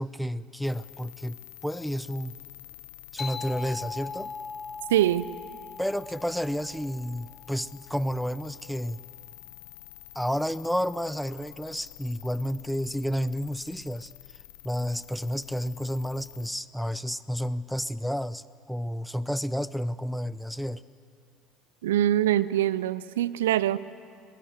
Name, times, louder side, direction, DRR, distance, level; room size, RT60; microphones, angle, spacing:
voice 1, 0.0-2.4 3.1-4.3 5.8-9.0 10.1-14.1 14.6-20.8, equal, ahead, 17 dB, 0.7 m, -31 dB
sound 1, 0.6-16.5, left 18 dB, 70° left, 0.9 m, -49 dB
sound 2, 3.2-8.2, left 5 dB, 40° left, 1.6 m, -40 dB
voice 2, 4.9-5.3 21.8-23.8, right 12 dB, 75° right, 18 dB, 0.5 m, -23 dB
22.5 x 20.0 x 8.0 m, 2.3 s
hypercardioid pair, 65°, 0 cm